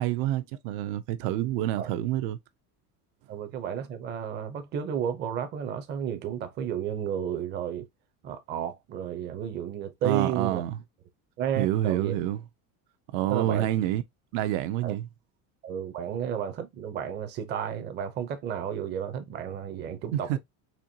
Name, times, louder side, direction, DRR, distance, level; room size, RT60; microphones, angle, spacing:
voice 1, 0.0-2.4 10.0-10.8 11.6-12.4 13.1-14.0 14.3-15.1 20.1-20.4, right 13 dB, 75° right, 0.6 m, -27 dB
voice 2, 3.3-7.9 8.2-10.6 11.4-12.1 13.3-13.7 14.8-15.0 15.6-20.4, right 9 dB, 25° right, 0.5 m, -32 dB
4.4 x 2.9 x 2.6 m
cardioid pair, 170°, 41 cm